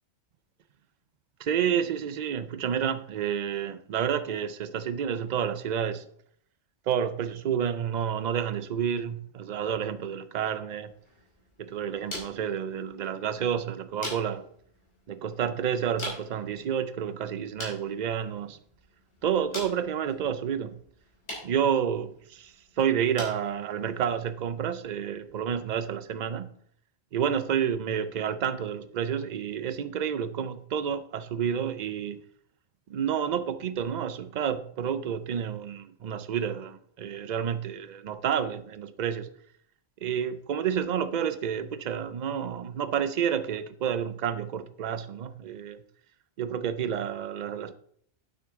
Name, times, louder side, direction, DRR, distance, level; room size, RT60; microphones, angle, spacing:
voice 1, 1.4-6.1 6.9-10.9 11.6-14.5 15.1-18.6 19.2-20.8 21.4-26.5 27.1-32.2 32.9-39.3 40.0-45.8 46.4-47.8, right 8 dB, 50° right, 0.5 m, -30 dB
sound 1, 10.9-25.9, left 1 dB, 70° left, 3.2 m, -45 dB
8.8 x 6.6 x 3.6 m
omnidirectional pair, 1.2 m